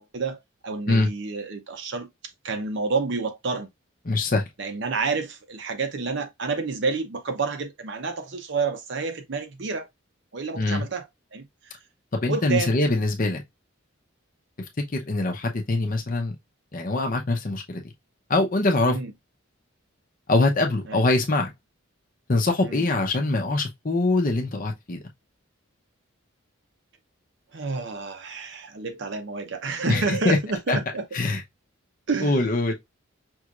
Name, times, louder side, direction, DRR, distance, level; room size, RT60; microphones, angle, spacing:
voice 1, 0.0-2.1 2.4-3.7 4.6-9.9 10.3-11.1 11.3-11.8 12.3-12.7 18.8-19.1 20.9-21.1 22.6-22.9 27.5-31.0 32.1-32.5, right 4 dB, 60° right, 0.7 m, -29 dB
voice 2, 4.1-4.4 10.5-10.8 12.1-13.4 14.9-16.3 16.7-17.8 18.3-19.0 20.3-21.5 22.3-25.0 29.9-30.4 30.7-30.8 31.1-31.4 32.2-32.7, left 2 dB, 40° left, 0.7 m, -23 dB
5.4 x 3.0 x 2.4 m
head